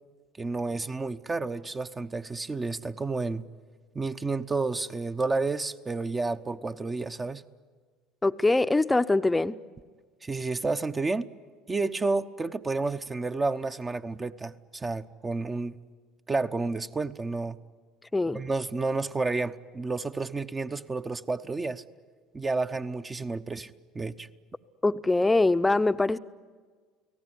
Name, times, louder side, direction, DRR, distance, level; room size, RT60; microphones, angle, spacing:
voice 1, 0.4-3.4 3.9-7.4 10.2-11.3 11.7-15.8 16.3-17.6 18.3-21.8 22.3-24.3, right 3 dB, 20° right, 8 dB, 0.9 m, -30 dB
voice 2, 8.2-9.6 18.1-18.4 24.8-26.2, left 2 dB, 15° left, 12 dB, 0.8 m, -23 dB
30.0 x 18.0 x 9.9 m, 1.5 s
hypercardioid pair, 65°, 0 cm